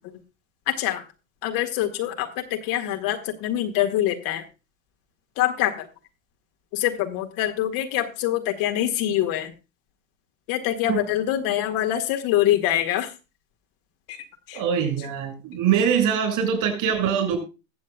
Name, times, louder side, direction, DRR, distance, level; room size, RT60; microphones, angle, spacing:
voice 1, 0.7-1.0 1.4-4.5 5.4-5.9 6.7-9.5 10.5-13.1 14.1-14.2 14.5-14.6, left 12 dB, 55° left, 5 dB, 1.8 m, -24 dB
voice 2, 14.5-17.4, right 8 dB, 55° right, 6 dB, 6.3 m, -23 dB
21.5 x 7.3 x 2.3 m, 0.29 s
hypercardioid pair, 100°, 39 cm